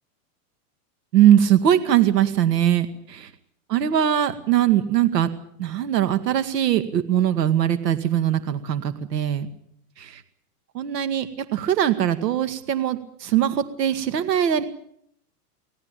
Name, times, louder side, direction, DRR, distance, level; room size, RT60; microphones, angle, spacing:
voice 1, 1.1-3.3 3.7-5.3 5.6-9.5 10.7-14.6, right 10 dB, 90° right, 11 dB, 2.2 m, -21 dB
25.5 x 18.0 x 9.0 m, 0.71 s
supercardioid pair, 160°, 47 cm